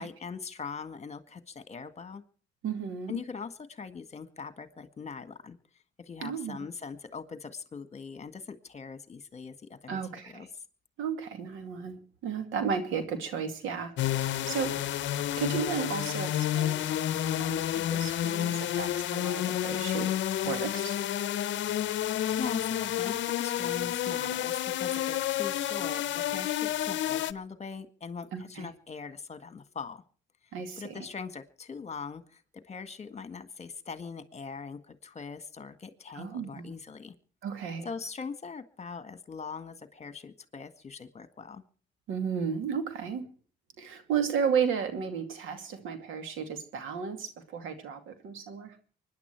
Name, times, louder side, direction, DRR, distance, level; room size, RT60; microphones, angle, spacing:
voice 1, 0.0-2.2 3.1-5.6 6.0-10.5 22.3-30.0 30.4-37.1 37.8-41.6, left 5 dB, 35° left, 10 dB, 1.7 m, -41 dB
voice 2, 2.6-3.2 6.2-6.7 9.9-10.5 11.0-14.7 15.4-20.1 20.4-20.9 28.3-28.7 30.5-30.8 36.1-36.7 37.4-37.9 42.1-43.2 43.8-48.8, right 6 dB, 90° right, 8 dB, 2.4 m, -34 dB
sound 1, 14.0-27.3, left 12 dB, 70° left, 0.7 m, -30 dB
24.5 x 10.5 x 4.6 m, 0.42 s
cardioid pair, 90°, 20 cm